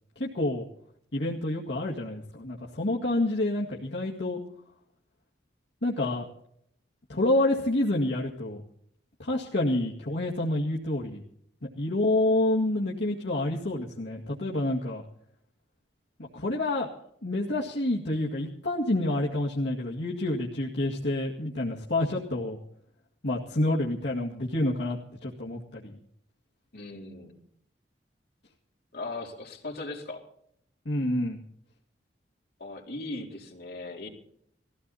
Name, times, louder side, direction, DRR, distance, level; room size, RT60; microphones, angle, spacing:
voice 1, 0.2-0.6 1.1-4.4 5.8-6.3 7.1-8.6 9.2-11.2 11.8-15.0 16.3-16.9 17.2-22.6 23.2-26.0 30.9-31.4, left 1 dB, 75° left, -3 dB, 2.1 m, -28 dB
voice 2, 26.7-27.3 28.9-30.2 32.6-34.1, left 2 dB, 60° left, 0 dB, 4.0 m, -38 dB
20.0 x 16.0 x 4.2 m, 0.70 s
head